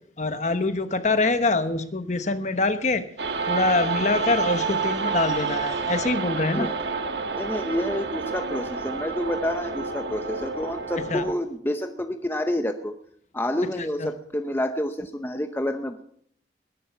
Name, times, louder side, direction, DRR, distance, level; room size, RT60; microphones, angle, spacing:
voice 1, 0.2-3.0 3.5-6.7 11.1-11.2 13.8-14.1, left 3 dB, 40° left, 10 dB, 1.1 m, -24 dB
sound 1, 3.2-11.3, right 4 dB, 70° right, 1.4 m, -29 dB
voice 2, 7.4-12.9 13.3-16.0, left 1 dB, 10° left, 7 dB, 0.7 m, -28 dB
19.5 x 11.0 x 5.8 m, 0.64 s
head